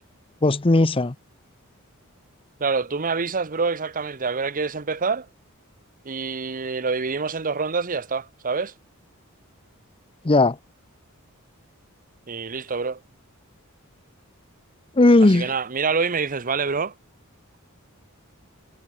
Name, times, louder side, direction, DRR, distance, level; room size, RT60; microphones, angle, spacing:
voice 1, 0.4-1.1 10.2-10.6 15.0-15.5, left 2 dB, 25° left, 0.7 m, -17 dB
voice 2, 2.6-5.3 6.0-8.7 12.3-13.0 15.2-16.9, right 4 dB, 40° right, 0.9 m, -26 dB
head